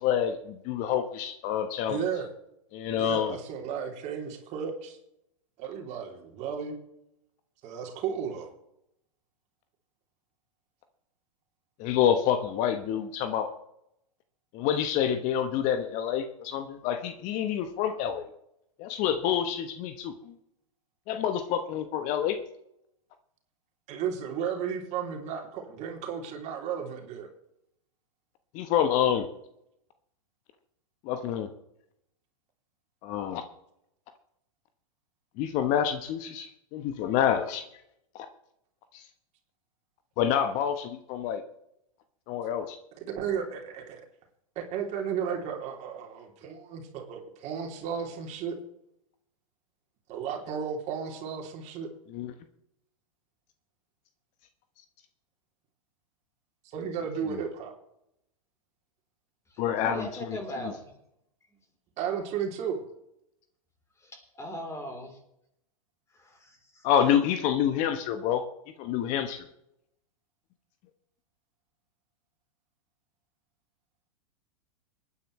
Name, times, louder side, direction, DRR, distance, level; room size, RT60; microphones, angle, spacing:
voice 1, 0.0-2.0 2.7-3.3 11.8-13.5 14.5-18.3 18.8-20.3 21.1-22.4 28.5-29.3 31.0-31.5 33.0-33.4 35.4-37.6 38.9-39.0 40.2-41.4 42.3-42.8 52.1-52.3 59.6-60.1 66.8-68.4 68.8-69.4, left 9 dB, 45° left, 9 dB, 1.2 m, -27 dB
voice 2, 1.9-2.3 3.0-5.0 5.6-6.8 7.6-8.5 23.9-27.3 43.0-44.0 44.5-48.6 50.1-51.9 56.7-57.7 62.0-62.8, right 7 dB, 40° right, 2 dB, 3.2 m, -34 dB
voice 3, 59.5-60.9 64.0-65.2 66.1-66.9, equal, 15° left, 4 dB, 3.8 m, -40 dB
26.5 x 9.9 x 3.2 m, 0.79 s
hypercardioid pair, 105°, 18 cm